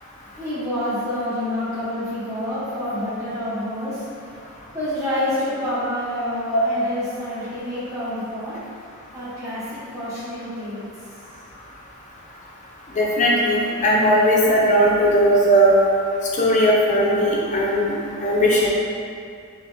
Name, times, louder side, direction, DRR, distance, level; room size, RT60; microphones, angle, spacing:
voice 1, 0.4-4.1 4.7-8.6 9.1-10.9, left 1 dB, 15° right, -12 dB, 1.3 m, -28 dB
voice 2, 12.9-15.8 16.3-17.9 18.2-18.7, equal, 35° left, -4 dB, 0.6 m, -17 dB
4.1 x 3.0 x 3.4 m, 2.3 s
head